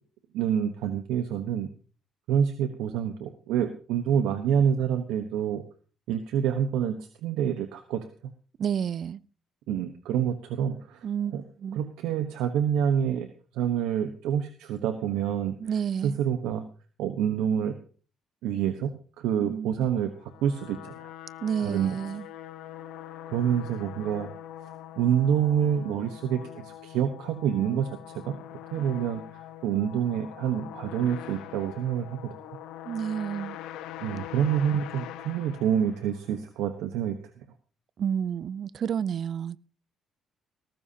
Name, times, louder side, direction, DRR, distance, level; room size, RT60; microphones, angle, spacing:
voice 1, 0.3-1.7 2.3-5.6 6.1-8.0 9.7-11.0 11.3-11.4 11.7-13.3 13.5-15.6 16.0-16.6 17.0-17.7 18.4-18.9 19.2-21.1 21.6-22.0 23.3-24.3 25.0-28.4 28.7-29.2 29.6-32.3 34.0-37.2, right 9 dB, 85° right, 1.0 m, -27 dB
voice 2, 8.6-9.2 11.0-11.3 11.6-11.8 15.6-16.2 19.4-19.9 21.4-22.3 32.8-33.6 38.0-39.6, right 8 dB, 55° right, 0.6 m, -30 dB
sound 1, 20.1-36.4, left 11 dB, 90° left, 1.1 m, -43 dB
18.0 x 15.0 x 2.8 m
cardioid pair, 85°, 0 cm